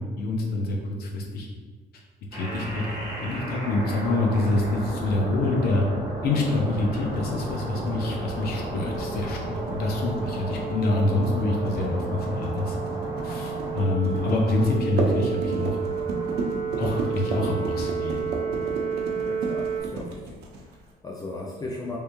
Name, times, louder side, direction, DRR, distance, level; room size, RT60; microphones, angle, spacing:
voice 1, 0.0-1.5 2.3-5.8 6.2-12.8 13.2-15.8 16.8-18.4, left 2 dB, 65° left, 1 dB, 0.8 m, -26 dB
sound 1, 2.3-19.8, right 4 dB, 20° right, 1.5 m, -32 dB
sound 2, 7.2-20.9, right 3 dB, 75° right, 0.7 m, -33 dB
voice 2, 19.2-22.0, left 2 dB, 20° left, -3 dB, 0.4 m, -37 dB
3.3 x 3.2 x 3.0 m, 1.4 s
cardioid pair, 110°, 17 cm